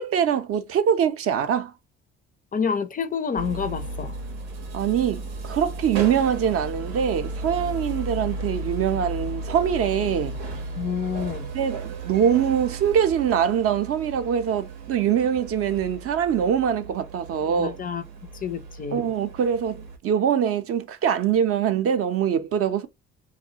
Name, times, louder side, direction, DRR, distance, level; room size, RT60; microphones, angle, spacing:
voice 1, 0.0-1.7 4.7-10.4 11.5-17.8 18.9-22.9, right 8 dB, 50° right, 0.5 m, -23 dB
voice 2, 2.5-4.1 10.8-11.5 17.6-18.0 18.3-19.1, left 6 dB, 30° left, 0.4 m, -28 dB
sound 1, 3.4-20.0, right 2 dB, 80° right, 0.7 m, -35 dB
2.4 x 2.1 x 2.7 m
hypercardioid pair, 60°, 29 cm